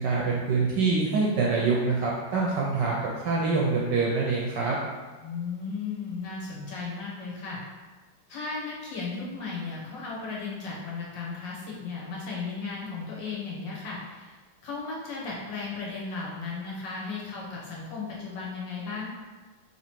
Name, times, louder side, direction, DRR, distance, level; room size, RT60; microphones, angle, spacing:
voice 1, 0.0-4.8, right 4 dB, 70° right, -3 dB, 1.0 m, -25 dB
voice 2, 5.2-7.6 8.3-14.3 14.6-19.1, left 4 dB, 65° left, -4 dB, 1.5 m, -35 dB
3.9 x 3.0 x 4.4 m, 1.3 s
omnidirectional pair, 2.4 m